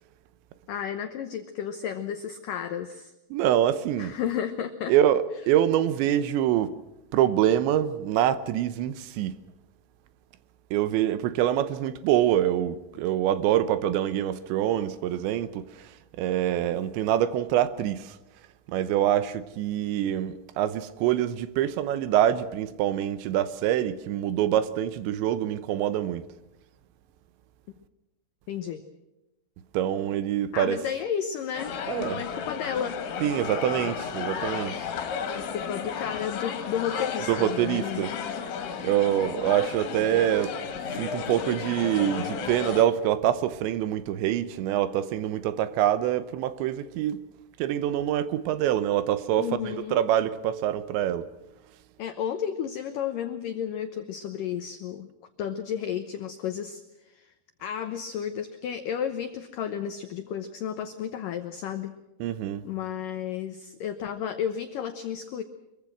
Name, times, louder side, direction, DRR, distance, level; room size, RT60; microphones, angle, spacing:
voice 1, 0.7-3.1 4.0-4.9 28.5-28.8 30.5-33.0 35.3-38.1 49.4-50.0 52.0-55.1 55.4-57.3 57.6-61.9 62.6-65.4, left 8 dB, 90° left, 1.9 m, -32 dB
voice 2, 3.3-4.2 4.9-6.7 7.1-9.4 10.7-18.2 18.7-26.2 29.7-30.8 31.9-32.2 33.2-34.9 37.3-38.1 38.8-40.6 41.0-47.2 47.6-51.3 62.2-62.7, right 11 dB, 80° right, 3.1 m, -25 dB
sound 1, 31.6-42.8, left 6 dB, 75° left, 4.3 m, -33 dB
25.0 x 22.5 x 6.1 m
omnidirectional pair, 5.4 m